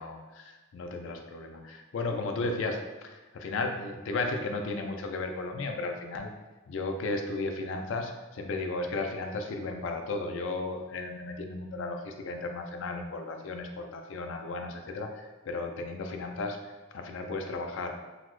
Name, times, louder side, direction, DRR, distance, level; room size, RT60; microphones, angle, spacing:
voice 1, 0.0-6.3 6.7-17.9, left 3 dB, 75° left, 4 dB, 0.4 m, -34 dB
3.9 x 2.0 x 3.0 m, 1.2 s
head